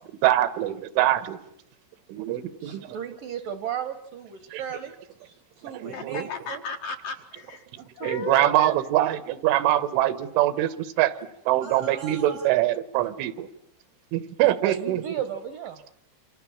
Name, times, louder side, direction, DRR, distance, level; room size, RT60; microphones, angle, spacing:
voice 1, 0.2-1.4 2.1-3.0 4.5-4.6 5.6-6.2 8.1-11.1 11.5-13.5 14.1-15.0, right 14 dB, 85° right, 14 dB, 3.7 m, -24 dB
voice 2, 2.6-4.9 5.2-6.6 7.8-7.9 11.6-12.6 14.4-15.8, right 9 dB, 70° right, 9 dB, 2.1 m, -35 dB
voice 3, 5.9-7.7 7.9-8.8, left 4 dB, 60° left, 4 dB, 2.5 m, -35 dB
27.5 x 27.0 x 7.2 m, 0.75 s
omnidirectional pair, 5.4 m